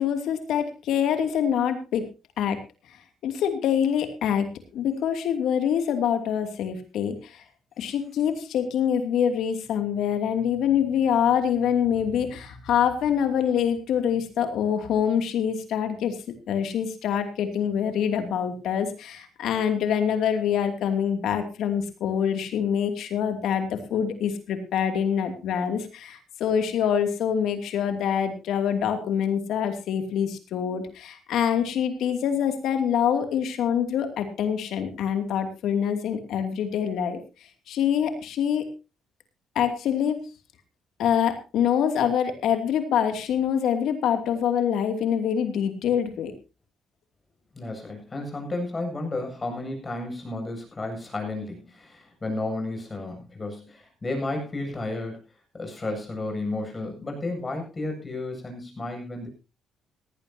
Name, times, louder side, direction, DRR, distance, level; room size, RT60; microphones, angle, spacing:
voice 1, 0.0-2.0 2.4-2.6 3.2-4.5 4.7-7.4 7.8-16.1 16.5-37.2 37.7-38.6 39.5-40.2 41.0-46.3, left 8 dB, 80° left, 7 dB, 2.7 m, -25 dB
voice 2, 47.5-55.2 55.5-59.3, left 2 dB, 25° left, 3 dB, 7.7 m, -32 dB
18.0 x 15.5 x 2.9 m, 0.30 s
cardioid pair, 90°, 0 cm